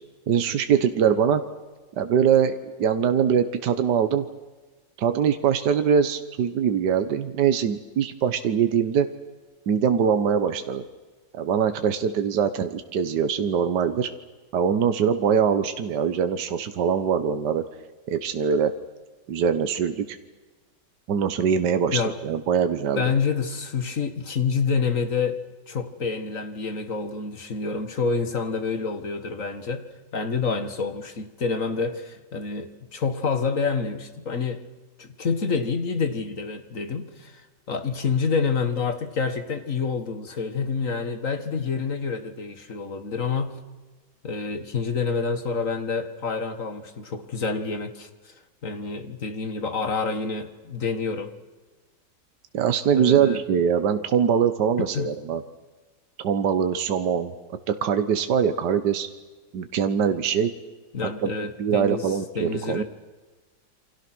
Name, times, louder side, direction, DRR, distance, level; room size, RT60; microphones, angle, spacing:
voice 1, 0.3-1.4 2.0-4.3 5.0-9.1 9.7-10.8 11.3-14.1 14.5-17.6 18.1-18.7 19.3-20.2 21.1-23.0 52.5-55.4 56.2-57.3 57.7-59.1 59.5-60.5 61.0-62.8, right 7 dB, 75° right, 9 dB, 1.7 m, -23 dB
voice 2, 23.0-25.4 25.7-29.9 30.1-34.6 35.0-37.4 37.7-43.6 44.2-48.1 48.6-51.3 52.9-53.4 54.8-55.1 60.9-62.1 62.4-62.8, left 5 dB, 50° left, 8 dB, 2.1 m, -27 dB
28.5 x 25.0 x 6.2 m, 1.3 s
omnidirectional pair, 1.8 m